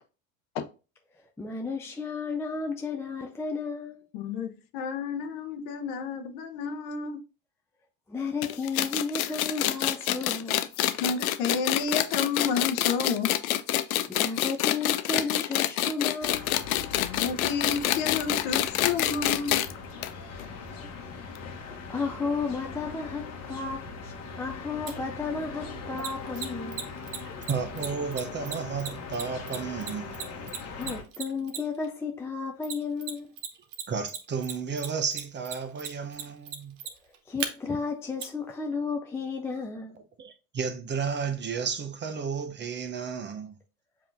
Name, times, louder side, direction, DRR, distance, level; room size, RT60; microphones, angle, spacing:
voice 1, 1.4-4.0 8.1-10.6 14.1-16.6 20.5-20.9 21.2-21.3 21.6-26.8 30.7-33.3 37.3-40.0, left 4 dB, 5° left, 0.3 m, -33 dB
voice 2, 4.1-7.2 11.0-13.3 17.0-19.6 20.0-20.1, left 5 dB, 60° left, 0.9 m, -31 dB
sound 1, 8.4-19.7 20.0-20.1 20.4-20.5 21.4-21.5, left 13 dB, 80° left, 0.5 m, -27 dB
sound 2, 16.2-31.0, left 4 dB, 40° left, 1.1 m, -40 dB
Mechanisms, 24.9-25.0 26.0-31.9 32.6-33.5 33.7-37.5 38.2-38.3, right 8 dB, 65° right, 0.9 m, -35 dB
voice 3, 27.5-30.1 33.9-36.8 40.2-43.6, right 6 dB, 25° right, 0.7 m, -33 dB
7.1 x 2.8 x 2.6 m
hypercardioid pair, 80°, 42 cm